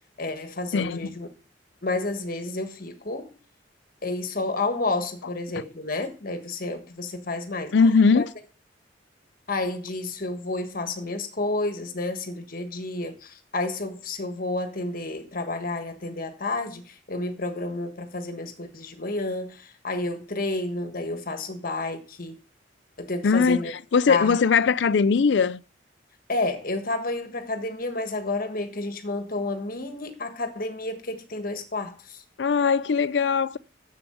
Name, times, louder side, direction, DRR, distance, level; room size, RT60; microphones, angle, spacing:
voice 1, 0.2-1.3 1.8-3.3 4.0-7.7 8.1-8.2 9.5-22.4 23.0-23.7 24.1-24.4 26.3-32.2, left 2 dB, 50° left, 1.4 m, -30 dB
voice 2, 0.7-1.2 5.6-5.7 7.7-8.3 23.2-25.6 32.4-33.6, left 5 dB, 65° left, 0.4 m, -20 dB
7.5 x 7.0 x 6.9 m
head